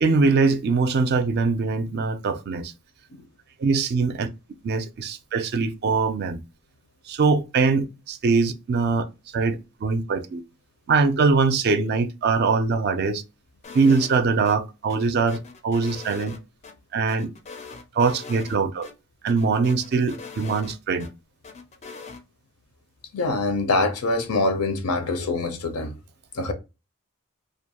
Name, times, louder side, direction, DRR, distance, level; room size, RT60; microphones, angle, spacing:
voice 1, 0.0-2.7 3.6-4.3 4.6-6.4 7.1-9.0 9.3-10.4 10.9-13.2 13.7-15.4 15.6-16.3 16.9-17.3 17.9-18.9 19.2-21.1, right 4 dB, 45° right, 0.4 m, -22 dB
sound 1, 13.6-14.6 14.9-16.7 17.1-18.6 18.8-18.9 19.3-21.1 21.4-22.2, left 4 dB, 30° left, 0.4 m, -41 dB
voice 2, 23.1-25.9 26.3-26.5, left 2 dB, 80° left, 0.6 m, -24 dB
2.5 x 2.2 x 2.8 m
head